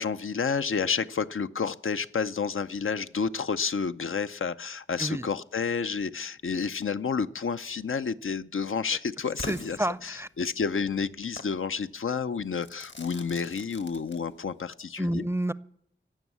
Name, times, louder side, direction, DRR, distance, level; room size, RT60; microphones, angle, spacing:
voice 1, 0.0-9.8 10.0-15.3, left 5 dB, 90° left, 11 dB, 0.5 m, -30 dB
Crackle / Fireworks, 9.4-10.5 11.4-11.6 12.6-14.6, left 2 dB, 65° left, 1.2 m, -43 dB
voice 2, 9.5-10.3 15.0-15.5, right 1 dB, 10° right, 17 dB, 0.5 m, -29 dB
16.5 x 6.2 x 9.6 m, 0.69 s
wide cardioid pair, 50°, 20 cm